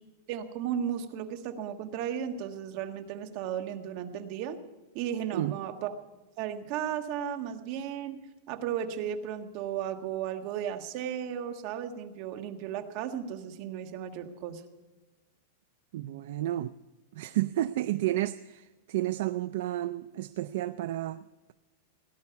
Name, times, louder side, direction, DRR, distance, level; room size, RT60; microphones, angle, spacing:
voice 1, 0.3-4.6 4.9-5.9 6.4-8.2 8.5-14.6, right 9 dB, 40° right, 1.5 m, -35 dB
voice 2, 15.9-16.7 17.2-21.2, right 14 dB, 60° right, 0.5 m, -31 dB
18.5 x 11.0 x 5.8 m
supercardioid pair, 160°, 0 cm